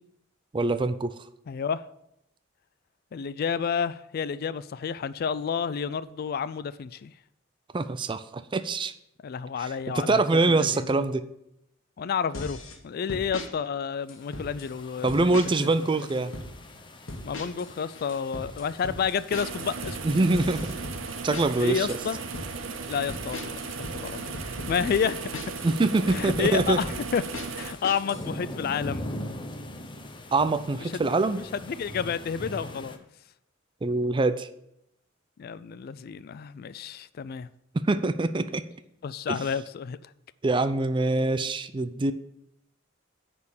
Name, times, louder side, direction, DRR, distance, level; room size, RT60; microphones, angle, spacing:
voice 1, 0.5-1.1 7.7-8.9 9.6-11.2 15.0-16.3 20.0-20.7 21.2-22.0 25.6-26.8 30.3-31.4 33.8-34.5 37.7-38.6 39.3-39.4 40.4-42.1, right 2 dB, 25° right, 0.4 m, -24 dB
voice 2, 1.5-1.8 3.1-7.1 9.2-10.2 10.5-10.9 12.0-12.6 12.8-15.4 15.6-15.9 17.2-20.0 21.6-22.2 22.9-23.5 23.9-24.3 24.7-25.4 26.1-27.2 27.5-29.0 30.9-31.0 31.5-33.0 35.4-37.5 39.0-40.0, left 6 dB, 50° left, 0.3 m, -30 dB
sound 1, 12.3-12.8 13.1-13.5 14.1-14.7 15.1-15.7 16.0-16.5 17.1-17.7 17.9-21.7 22.1-22.5 23.1-25.7 26.1-28.2, left 2 dB, 90° left, 1.5 m, -38 dB
sound 2, 14.1-33.0, left 1 dB, 25° left, 0.8 m, -43 dB
sound 3, 19.3-27.7, right 5 dB, 90° right, 0.7 m, -36 dB
9.6 x 4.3 x 7.1 m
head